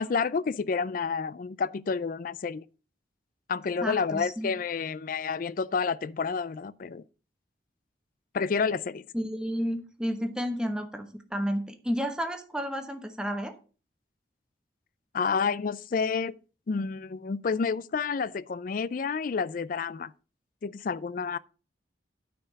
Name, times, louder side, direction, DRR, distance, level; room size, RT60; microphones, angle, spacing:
voice 1, 0.0-2.6 3.5-7.0 8.3-9.0 15.1-16.3 16.7-20.1 20.6-21.4, left 5 dB, 50° left, 0.4 m, -29 dB
voice 2, 3.8-4.5 9.1-13.5, equal, 5° right, 1.1 m, -31 dB
9.2 x 4.5 x 6.5 m
head